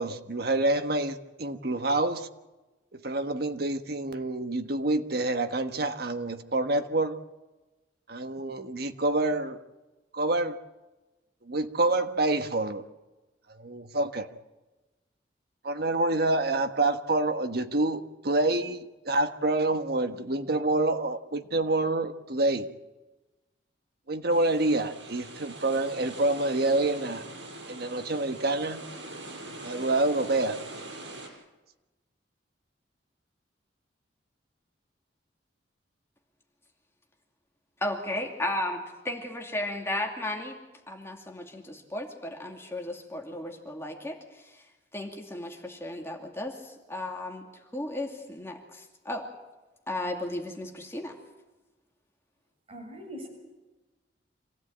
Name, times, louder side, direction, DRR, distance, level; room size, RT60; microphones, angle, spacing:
voice 1, 0.0-2.3 2.9-7.2 8.1-9.6 10.1-10.6 11.5-12.8 13.6-14.3 15.6-22.7 24.1-27.2 27.7-28.8 29.6-30.6, right 2 dB, 60° right, 7 dB, 1.4 m, -27 dB
sound 1, 24.3-31.3, right 2 dB, 85° right, 5.7 m, -43 dB
voice 2, 37.8-40.6 40.9-44.5 44.9-47.5 47.7-49.3 49.9-51.2, left 1 dB, 15° left, 2 dB, 2.5 m, -34 dB
voice 3, 52.7-53.3, equal, 30° right, 0 dB, 7.1 m, -41 dB
26.0 x 16.0 x 8.7 m, 1.1 s
head